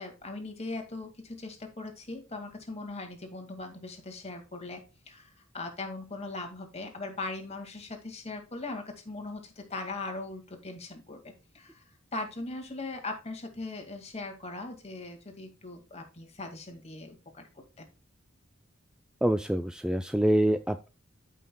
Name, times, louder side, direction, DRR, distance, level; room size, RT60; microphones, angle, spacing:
voice 1, 0.0-4.8 5.1-11.8 12.1-17.5 17.8-17.9, left 2 dB, 35° left, 4 dB, 2.0 m, -40 dB
voice 2, 19.2-20.9, right 1 dB, 5° right, 9 dB, 0.3 m, -26 dB
14.0 x 5.7 x 2.2 m, 0.31 s
head